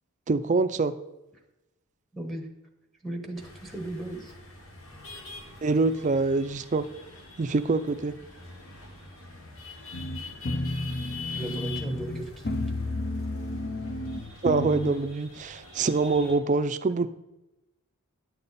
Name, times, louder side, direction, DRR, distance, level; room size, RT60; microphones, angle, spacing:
voice 1, 0.3-0.9 5.6-6.8 7.4-8.1 14.4-17.1, right 3 dB, 35° right, 11 dB, 0.4 m, -25 dB
voice 2, 2.1-2.5 3.0-4.3 11.3-12.8, right 1 dB, ahead, 2 dB, 1.0 m, -36 dB
sound 1, 3.4-16.4, left 4 dB, 65° left, 1.5 m, -45 dB
sound 2, 9.9-14.9, left 1 dB, 45° left, 0.6 m, -32 dB
9.8 x 6.8 x 4.1 m, 0.97 s
head